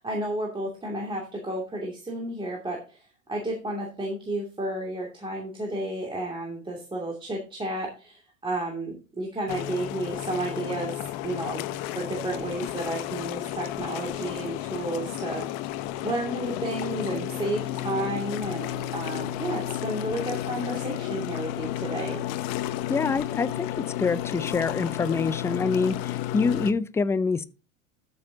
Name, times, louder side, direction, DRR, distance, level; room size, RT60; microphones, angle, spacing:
voice 1, 0.0-3.0 3.3-10.9 11.2-11.7 12.0-15.4 16.0-22.2, right 1 dB, 15° right, 2.5 m, -32 dB
sound 1, 9.5-26.7, left 13 dB, 50° left, 0.9 m, -32 dB
voice 2, 22.9-27.4, left 4 dB, 5° left, 0.4 m, -26 dB
13.0 x 6.8 x 2.8 m
hypercardioid pair, 85°, 39 cm